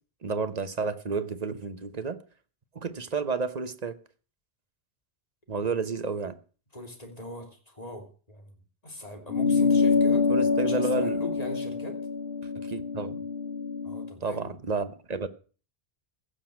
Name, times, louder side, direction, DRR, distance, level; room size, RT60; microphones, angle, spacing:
voice 1, 0.2-2.2 2.7-4.0 5.5-6.4 10.3-11.2 12.5-13.2 14.2-15.3, right 4 dB, 40° right, 1.0 m, -31 dB
voice 2, 6.7-8.5 8.8-10.3 10.6-12.0 13.8-14.5, left 1 dB, 40° left, 3.1 m, -40 dB
sound 1, 9.3-14.1, left 5 dB, 70° left, 1.8 m, -26 dB
15.5 x 6.7 x 7.5 m
omnidirectional pair, 1.0 m